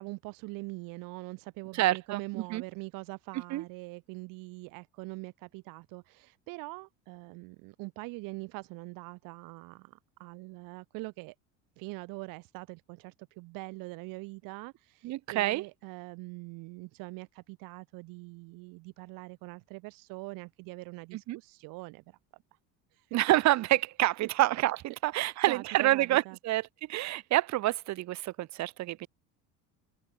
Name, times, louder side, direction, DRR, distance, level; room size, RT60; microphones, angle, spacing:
voice 1, 0.0-11.3 11.8-22.6 22.9-23.2 25.1-26.4, right 26 dB, 70° right, 4.7 m, -43 dB
voice 2, 1.7-2.6 3.5-3.6 15.0-15.6 21.3-21.4 23.1-26.6 26.9-29.1, right 16 dB, 50° right, 3.0 m, -27 dB
cardioid pair, 150°, 35 cm